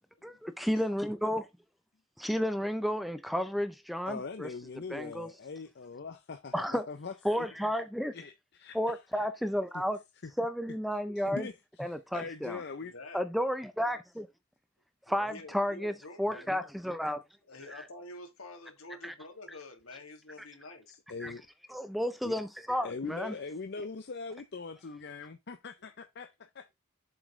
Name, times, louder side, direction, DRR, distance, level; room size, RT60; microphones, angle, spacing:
voice 1, 0.2-1.4 2.2-4.5 4.9-5.3 6.5-6.8 7.2-8.1 8.7-10.0 10.4-11.5 11.8-12.6 13.1-14.3 15.1-17.2 17.7-17.8 19.0-19.1 21.2-21.3 21.7-23.3, equal, ahead, 0.5 m, -32 dB
voice 2, 4.1-7.7 8.1-8.8 9.1-9.3 9.7-9.8 10.2-10.3 10.9-11.5 11.8-12.9 21.1-21.4 22.2-22.3 22.8-26.7, left 4 dB, 50° left, 0.6 m, -42 dB
voice 3, 12.8-13.3 15.1-16.7 17.5-21.0, left 2 dB, 75° left, 2.2 m, -48 dB
7.3 x 5.2 x 3.6 m
head